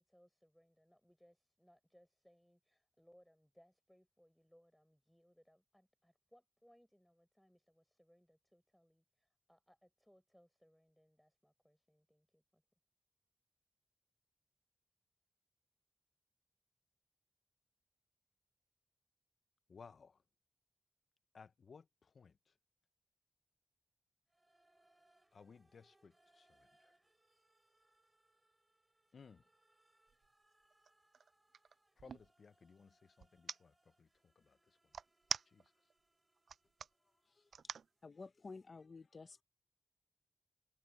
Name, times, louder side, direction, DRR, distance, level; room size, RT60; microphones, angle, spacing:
voice 1, 0.0-12.6, equal, ahead, 4.4 m, -70 dB
voice 2, 19.7-20.2 21.3-22.3 25.3-26.5 29.1-29.4 32.0-33.7 34.0-34.1 34.5-34.6 35.5-35.6, left 5 dB, 65° left, 0.6 m, -59 dB
sound 1, 24.3-38.1, right 1 dB, 15° right, 4.0 m, -77 dB
sound 2, 30.1-30.3 30.7-32.3 33.2-33.6 34.9-35.9 36.4-36.9 37.5-37.9, right 6 dB, 80° right, 0.3 m, -43 dB
voice 3, 38.0-39.4, left 4 dB, 45° left, 1.0 m, -52 dB
wide cardioid pair, 135°, 0 cm